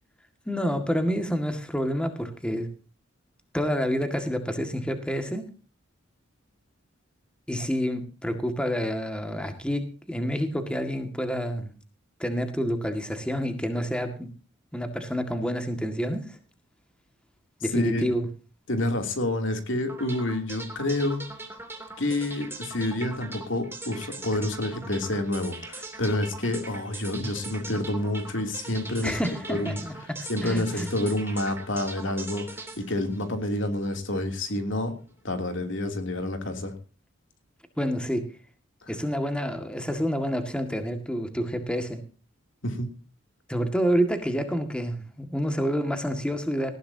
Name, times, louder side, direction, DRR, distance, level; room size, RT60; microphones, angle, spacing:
voice 1, 0.5-2.7 3.5-5.4 7.5-11.7 12.2-14.3 14.7-16.4 17.6-18.3 29.0-30.9 37.8-38.2 38.9-42.0 43.5-46.7, equal, 5° left, 6 dB, 1.9 m, -28 dB
voice 2, 17.7-18.0 18.7-21.2 22.0-29.2 29.5-29.8 30.3-34.9 35.2-36.7 38.8-38.9 42.6-42.9, left 1 dB, 65° left, 6 dB, 2.9 m, -28 dB
sound 1, 19.9-34.0, right 2 dB, 10° right, 2.9 m, -41 dB
19.0 x 14.5 x 2.8 m, 0.36 s
head